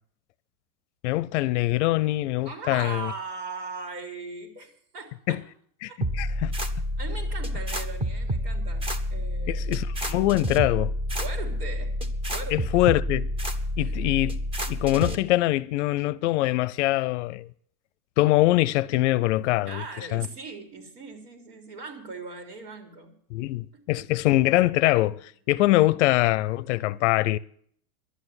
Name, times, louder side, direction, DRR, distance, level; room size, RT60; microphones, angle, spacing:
voice 1, 1.0-3.1 5.3-5.4 5.8-6.5 9.5-10.9 12.5-13.3 13.8-17.5 18.2-19.8 20.1-20.3 23.3-27.4, left 17 dB, 50° left, 0.5 m, -23 dB
voice 2, 2.4-5.4 5.9-6.0 7.0-9.6 11.1-11.9 12.2-12.8 13.8-13.9 19.7-23.1 24.0-24.1, right 4 dB, 80° right, 3.6 m, -39 dB
sound 1, 6.0-15.2, equal, 10° right, 0.6 m, -29 dB
11.5 x 9.0 x 9.6 m
supercardioid pair, 150°, 47 cm